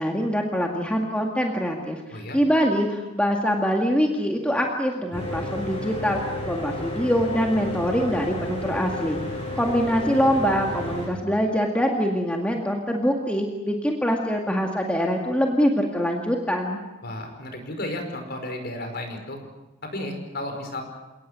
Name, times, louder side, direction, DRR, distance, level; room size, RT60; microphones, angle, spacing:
voice 1, 0.0-6.2 6.4-9.2 9.6-16.8, equal, 5° left, 0 dB, 2.0 m, -24 dB
Mechanical fan, 5.1-11.1, left 1 dB, 25° left, 6.7 m, -32 dB
voice 2, 17.0-19.4 19.8-20.8, left 1 dB, 45° left, 5 dB, 5.1 m, -33 dB
28.5 x 18.5 x 8.1 m, 1.1 s
head